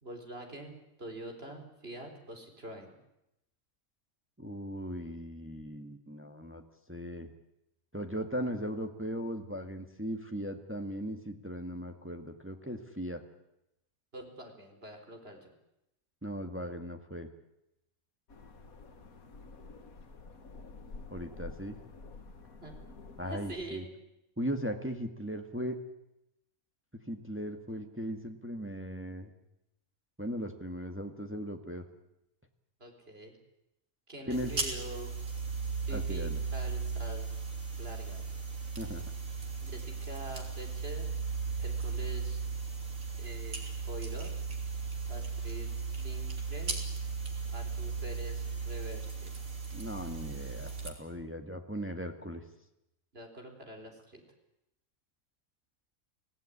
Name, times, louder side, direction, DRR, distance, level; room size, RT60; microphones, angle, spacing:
voice 1, 0.0-2.9 14.1-15.5 22.6-22.8 23.2-23.9 32.8-33.4 34.1-35.1 35.9-37.3 37.8-38.2 39.6-41.1 41.6-42.4 43.2-43.6 43.8-44.3 45.1-46.8 47.5-49.3 53.1-54.2, right 1 dB, 40° right, 3 dB, 4.5 m, -45 dB
voice 2, 4.4-6.6 6.9-7.3 7.9-13.2 16.2-17.3 21.1-21.8 23.2-23.8 24.4-25.8 27.1-29.3 30.2-31.9 34.3-34.5 35.9-36.4 38.8-39.0 49.7-52.4, equal, 10° right, 5 dB, 1.8 m, -38 dB
sound 1, 18.3-23.8, left 3 dB, 75° left, 2.1 m, -49 dB
sound 2, 34.3-50.9, right 5 dB, 65° right, 3.8 m, -36 dB
25.0 x 17.0 x 9.9 m, 0.87 s
omnidirectional pair, 1.5 m